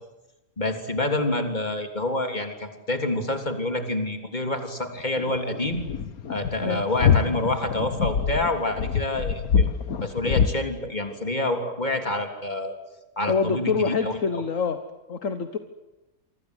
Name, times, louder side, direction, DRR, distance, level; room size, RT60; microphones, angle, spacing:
voice 1, 0.6-5.8 6.3-9.7 10.0-12.7 13.2-14.4, left 1 dB, 30° left, 5 dB, 3.6 m, -27 dB
sound 1, 5.0-10.5, left 7 dB, 75° left, 1.8 m, -24 dB
voice 2, 13.3-14.8 15.1-15.6, left 5 dB, 60° left, 9 dB, 1.7 m, -25 dB
28.0 x 25.0 x 8.1 m, 1.0 s
omnidirectional pair, 1.5 m